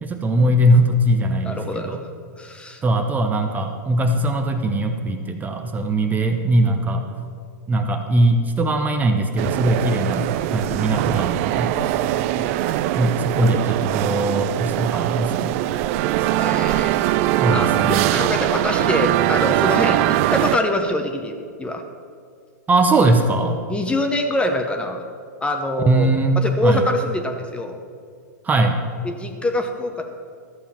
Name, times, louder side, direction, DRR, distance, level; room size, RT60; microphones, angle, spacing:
voice 1, 0.0-2.0 2.8-7.0 7.7-10.3 10.5-11.7 13.0-15.6 17.4-18.1 22.7-23.6 25.8-26.8 28.4-28.8, right 1 dB, 15° right, 5 dB, 0.9 m, -20 dB
voice 2, 1.4-2.1 2.4-2.8 11.8-12.5 13.4-13.7 16.1-21.8 23.7-25.0 25.4-27.8 29.0-30.0, left 1 dB, 10° left, 5 dB, 0.9 m, -25 dB
sound 1, 9.4-20.6, right 14 dB, 50° right, 0.4 m, -21 dB
13.0 x 7.0 x 5.9 m, 2.1 s
hypercardioid pair, 115°, 10 cm